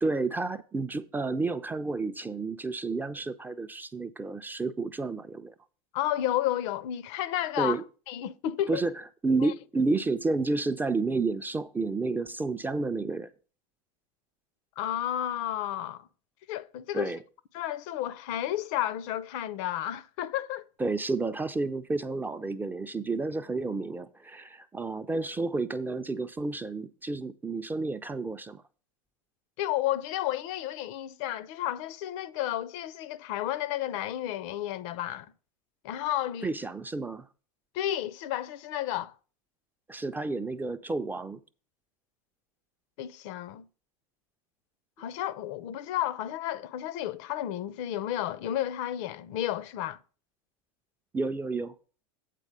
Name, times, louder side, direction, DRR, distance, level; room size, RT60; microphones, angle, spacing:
voice 1, 0.0-5.5 7.6-7.8 8.7-9.0 9.2-13.3 16.9-17.2 20.8-28.6 36.4-37.3 39.9-41.4 51.1-51.7, right 3 dB, 10° right, 0.3 m, -30 dB
voice 2, 5.9-7.8 8.1-8.8 9.4-9.5 14.8-16.1 16.5-17.1 17.5-20.6 29.6-35.3 35.8-36.5 37.7-39.1 43.0-43.6 45.0-50.0, left 12 dB, 60° left, 0.5 m, -32 dB
8.3 x 4.0 x 6.5 m
supercardioid pair, 120°, 18 cm